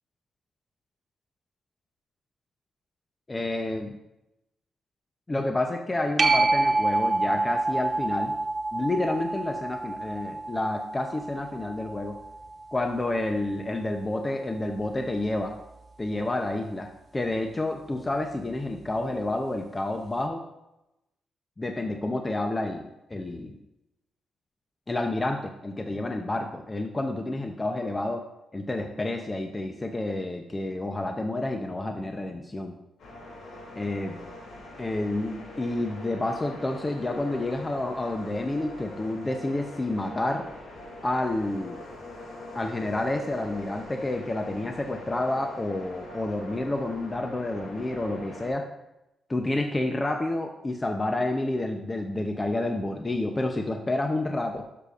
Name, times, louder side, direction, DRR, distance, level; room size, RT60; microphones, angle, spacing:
voice 1, 3.3-3.9 5.3-8.3 8.7-12.2 12.7-15.5 16.0-20.4 21.6-23.6 24.9-28.2 28.5-32.7 33.7-34.2 34.8-40.4 41.0-41.8 42.5-48.6 49.3-54.7, left 2 dB, 20° left, 4 dB, 0.7 m, -29 dB
sound 1, 6.2-13.3 18.9-19.0, right 2 dB, 40° right, 0.8 m, -28 dB
sound 2, 33.0-48.5, left 1 dB, 85° left, 2.6 m, -43 dB
11.5 x 6.8 x 2.5 m, 0.91 s
cardioid pair, 95°, 0 cm